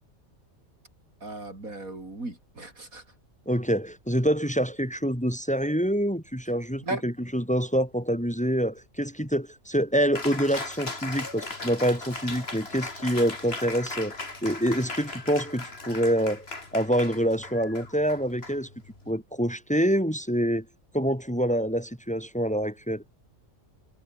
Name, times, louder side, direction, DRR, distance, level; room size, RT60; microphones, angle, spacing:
voice 1, 1.2-3.0 6.8-7.0, right 2 dB, 80° right, 6.1 m, -36 dB
voice 2, 3.5-14.1 14.4-16.5 16.7-18.7 19.1-20.6 20.9-23.0, equal, 5° left, 4.2 m, -26 dB
Cheering, 10.1-19.1, left 3 dB, 45° left, 3.5 m, -38 dB
omnidirectional pair, 1.4 m